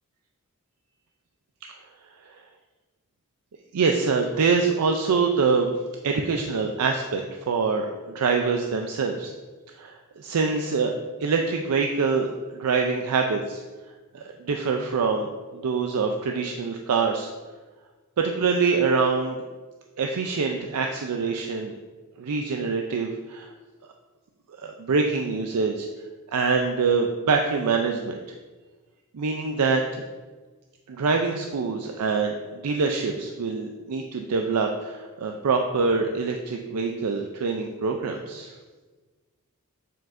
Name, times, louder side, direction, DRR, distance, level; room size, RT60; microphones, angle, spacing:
voice 1, 3.7-5.7 6.0-7.9 8.1-9.3 9.7-10.9 11.2-13.6 14.1-17.3 18.2-19.5 20.0-21.7 22.2-23.5 24.6-25.9 26.3-28.2 29.1-30.0 30.9-38.5, right 4 dB, 90° right, 3 dB, 0.5 m, -25 dB
7.0 x 6.1 x 2.5 m, 1.3 s
head